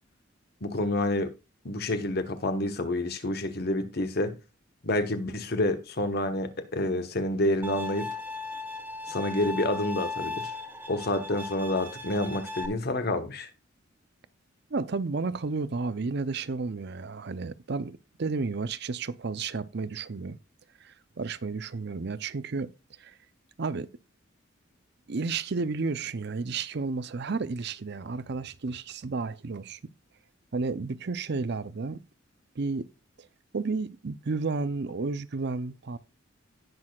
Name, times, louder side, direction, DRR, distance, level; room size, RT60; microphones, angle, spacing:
voice 1, 0.6-1.3 1.6-4.3 4.8-8.1 9.1-10.5 10.9-13.5, left 1 dB, 55° left, 1.3 m, -28 dB
Bowed string instrument, 7.6-12.7, left 3 dB, 10° right, 1.3 m, -37 dB
voice 2, 14.7-20.4 20.8-22.7 23.0-23.2 23.6-23.9 25.1-29.8 30.5-32.0 32.6-32.9 33.5-36.0, right 4 dB, 55° right, 0.6 m, -32 dB
17.5 x 6.2 x 2.4 m
head